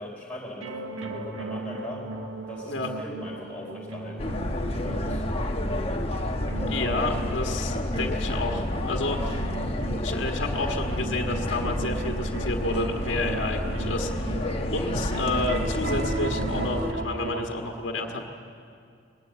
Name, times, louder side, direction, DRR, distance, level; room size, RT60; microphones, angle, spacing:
voice 1, 0.0-2.1 2.5-5.2 14.4-14.6, equal, 5° left, -4 dB, 4.0 m, -40 dB
sound 1, 0.6-17.5, right 3 dB, 90° right, 1.5 m, -37 dB
sound 2, 4.2-16.9, left 1 dB, 30° left, 1.2 m, -29 dB
voice 2, 6.7-9.5 10.0-14.4 14.7-18.2, left 2 dB, 75° left, 2 dB, 1.6 m, -30 dB
20.0 x 18.5 x 7.6 m, 2.4 s
head